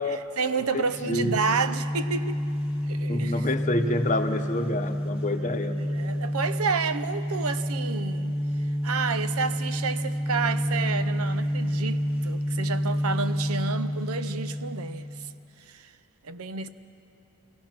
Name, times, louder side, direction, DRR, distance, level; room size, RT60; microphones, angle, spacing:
voice 1, 0.1-2.4 2.8-3.4 5.4-5.5 5.8-8.4 8.8-15.1 15.7-15.9 16.2-16.7, right 5 dB, 90° right, 0.7 m, -30 dB
voice 2, 0.7-1.4 3.1-5.8, left 1 dB, 35° left, 0.9 m, -28 dB
sound 1, 0.8-15.3, equal, 5° right, 1.8 m, -29 dB
28.0 x 16.5 x 5.9 m
head